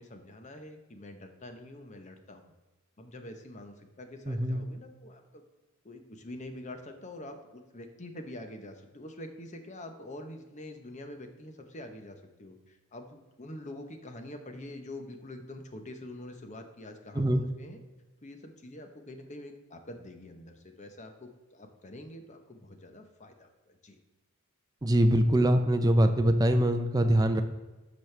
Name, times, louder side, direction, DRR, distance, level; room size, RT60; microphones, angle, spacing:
voice 1, 0.0-2.5 3.0-5.4 5.8-17.8 18.2-24.0, left 1 dB, 30° left, 6 dB, 0.8 m, -45 dB
voice 2, 4.3-4.6 17.1-17.4 24.8-27.4, right 1 dB, 15° right, 7 dB, 0.5 m, -23 dB
10.5 x 6.2 x 3.3 m, 1.2 s
head